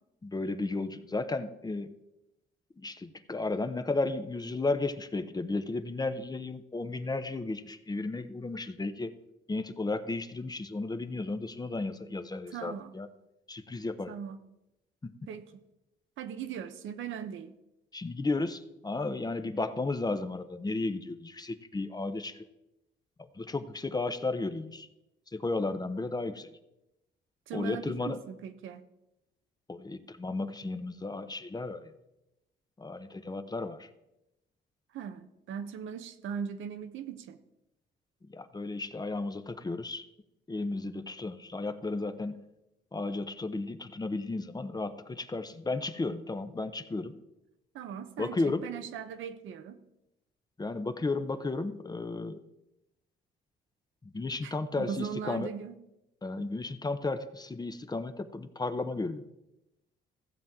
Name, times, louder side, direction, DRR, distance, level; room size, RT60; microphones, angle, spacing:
voice 1, 0.2-1.9 2.8-9.1 9.5-13.1 13.5-14.1 15.0-15.1 17.9-22.4 23.4-24.9 25.3-26.5 27.5-28.2 29.7-31.9 32.8-33.9 38.3-40.0 40.5-42.4 42.9-47.1 48.2-48.6 50.6-52.4 54.0-55.5 56.2-59.3, left 3 dB, 20° left, 10 dB, 0.7 m, -34 dB
voice 2, 12.5-12.9 14.1-14.4 15.3-15.5 16.2-17.5 27.5-28.8 34.9-37.4 47.7-49.8 54.4-55.8, right 7 dB, 80° right, 9 dB, 0.9 m, -39 dB
15.0 x 7.3 x 3.6 m, 0.91 s
cardioid pair, 90°, 20 cm